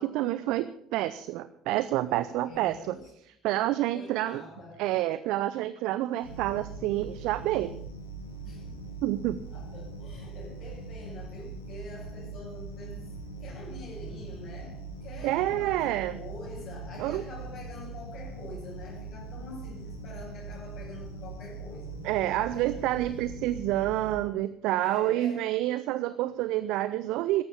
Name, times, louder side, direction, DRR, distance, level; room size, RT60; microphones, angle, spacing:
voice 1, 0.0-3.0 3.4-4.4 4.8-7.8 9.0-9.4 15.2-16.2 17.0-17.2 22.0-27.4, right 15 dB, 65° right, 14 dB, 0.6 m, -28 dB
voice 2, 2.1-3.1 3.9-4.8 8.4-8.7 9.2-13.1 13.4-22.1 22.5-23.0 24.8-25.5, left 3 dB, 55° left, -3 dB, 6.6 m, -46 dB
sound 1, 6.2-24.2, right 3 dB, 90° left, 2.8 m, -41 dB
14.0 x 11.5 x 6.9 m, 0.70 s
figure-of-eight pair, 55°, 0 cm